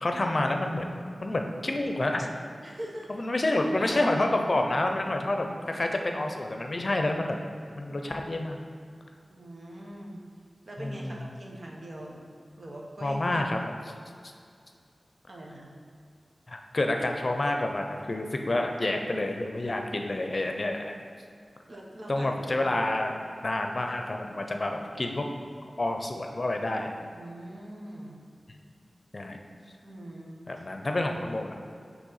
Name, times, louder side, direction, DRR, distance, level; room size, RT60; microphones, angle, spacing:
voice 1, 0.0-2.3 3.1-7.4 7.8-8.6 10.8-11.3 13.0-13.9 16.5-20.9 22.1-23.1 23.4-25.3 25.8-26.9 29.1-29.4 30.5-31.5, left 2 dB, 50° left, 3 dB, 0.6 m, -29 dB
voice 2, 2.6-3.2 3.8-3.9 7.9-8.0 9.3-10.2 10.7-12.2 12.6-13.2 15.3-15.7 21.7-22.7 27.1-28.2 29.8-30.6, right 1 dB, 60° right, -2 dB, 1.1 m, -42 dB
6.2 x 3.1 x 5.6 m, 2.3 s
cardioid pair, 45°, 0 cm